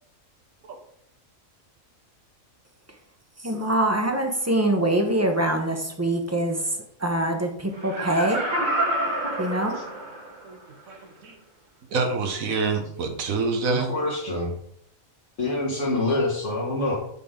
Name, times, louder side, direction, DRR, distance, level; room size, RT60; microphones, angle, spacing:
voice 1, 3.4-8.5 9.4-9.7, right 1 dB, 15° right, 4 dB, 0.8 m, -24 dB
Laughter, 7.8-10.4 10.9-11.0, right 1 dB, 35° right, 1.4 m, -28 dB
voice 2, 10.9-11.4 11.9-13.9, right 4 dB, 80° right, 6 dB, 1.4 m, -27 dB
voice 3, 13.7-14.5 15.4-16.9, left 2 dB, 60° left, -4 dB, 1.8 m, -26 dB
7.5 x 5.9 x 3.7 m, 0.69 s
omnidirectional pair, 1.4 m